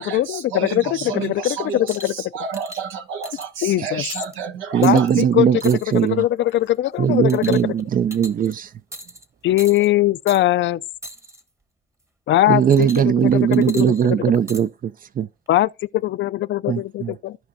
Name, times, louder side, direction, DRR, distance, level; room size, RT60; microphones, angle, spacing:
voice 1, 0.0-2.1 3.6-4.0 4.8-5.5 5.9-7.7 9.4-10.8 12.3-14.2 15.5-17.4, left 14 dB, 70° left, 0.4 m, -21 dB
voice 2, 0.5-1.8 2.3-3.3 3.8-5.1, right 6 dB, 90° right, 1.1 m, -30 dB
sound 1, 1.9-2.2 2.5-2.8 3.2-3.7 4.1-4.3 4.8-5.1 5.6-6.1 6.5-6.8 7.3-7.8 8.1-8.5 8.9-9.2 9.6-9.9 10.3-10.4 11.0-11.4 12.7-13.2 13.5-14.6 15.5-15.6, equal, 15° right, 1.0 m, -39 dB
voice 3, 4.7-6.2 7.0-8.7 12.5-15.3 16.7-17.1, right 8 dB, 45° right, 0.4 m, -19 dB
15.5 x 5.2 x 2.6 m
cardioid pair, 90°, 20 cm